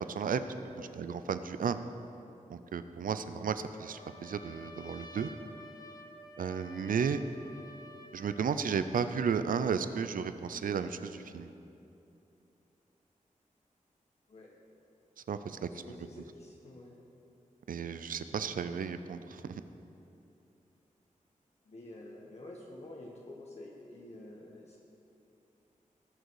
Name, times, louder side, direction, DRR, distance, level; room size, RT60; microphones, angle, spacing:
voice 1, 0.2-1.8 2.5-5.3 6.4-7.2 8.1-11.5 15.3-15.6 17.7-19.6, right 6 dB, 85° right, 11 dB, 0.5 m, -33 dB
Trumpet, 3.7-8.6, left 1 dB, 30° left, 0.9 m, -51 dB
voice 2, 15.6-16.9 21.6-24.8, left 1 dB, 50° left, -3 dB, 1.2 m, -49 dB
18.0 x 6.6 x 4.7 m, 2.8 s
wide cardioid pair, 130°, 14 cm